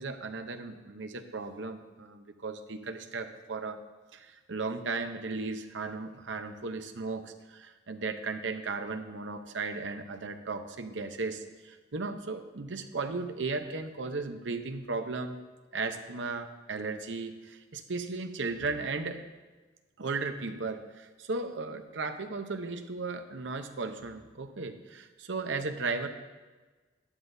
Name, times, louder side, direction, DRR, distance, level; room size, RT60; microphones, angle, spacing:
voice 1, 0.0-3.8 4.1-15.4 15.7-19.2 20.0-26.1, right 3 dB, 80° right, 7 dB, 0.8 m, -36 dB
12.5 x 11.5 x 2.7 m, 1.3 s
head